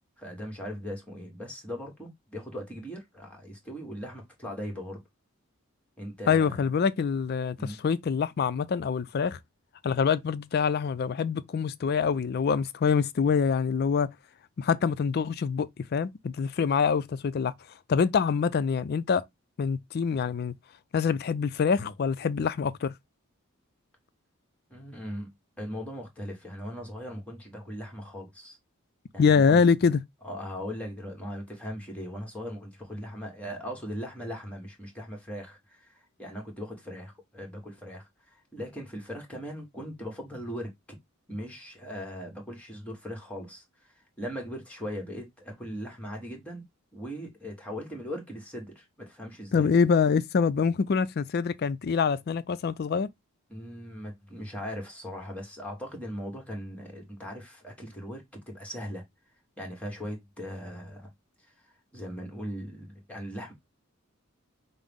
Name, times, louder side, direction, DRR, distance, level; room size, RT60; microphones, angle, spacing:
voice 1, 0.2-5.0 6.0-6.7 7.6-7.8 24.7-28.6 29.1-29.6 30.2-40.7 41.3-46.6 46.9-49.7 53.5-59.0 59.6-61.1 61.6-63.5, equal, 5° left, 1.2 m, -39 dB
voice 2, 6.3-9.4 9.8-14.1 14.6-17.5 17.9-19.2 19.6-20.5 20.9-22.9 29.2-30.0 49.5-53.1, left 6 dB, 45° left, 0.3 m, -25 dB
5.5 x 2.0 x 3.4 m
head